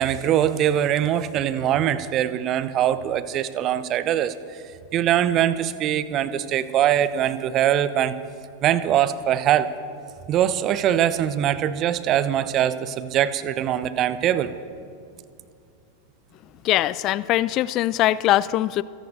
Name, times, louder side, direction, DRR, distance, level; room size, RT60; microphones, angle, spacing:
voice 1, 0.0-4.3 4.9-8.2 8.6-9.7 10.3-14.5, right 11 dB, 35° right, 14 dB, 0.7 m, -22 dB
voice 2, 16.6-18.8, left 15 dB, 35° left, 19 dB, 0.3 m, -21 dB
27.5 x 17.5 x 2.7 m, 2.4 s
figure-of-eight pair, 90°, 0 cm